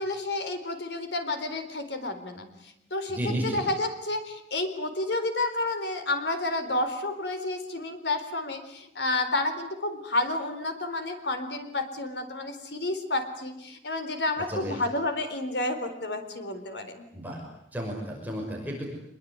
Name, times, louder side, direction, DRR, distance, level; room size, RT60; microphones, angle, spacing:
voice 1, 0.0-17.1, left 2 dB, 80° left, 8 dB, 4.0 m, -30 dB
voice 2, 3.1-3.7 14.5-14.8 17.1-17.4 17.7-18.9, equal, 10° right, -1 dB, 5.9 m, -32 dB
26.0 x 22.0 x 9.7 m, 0.79 s
head